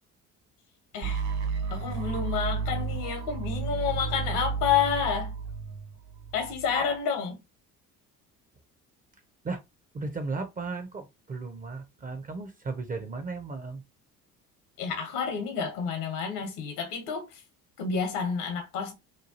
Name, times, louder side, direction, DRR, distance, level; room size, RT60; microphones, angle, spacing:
sound 1, 1.0-7.0, right 5 dB, 50° right, 0.7 m, -32 dB
voice 1, 1.7-5.3 6.3-7.4 14.8-17.3 17.8-18.9, left 7 dB, 70° left, 1.0 m, -29 dB
voice 2, 9.9-13.8, right 3 dB, 20° right, 0.4 m, -35 dB
3.0 x 2.3 x 2.7 m
figure-of-eight pair, 55°, 46 cm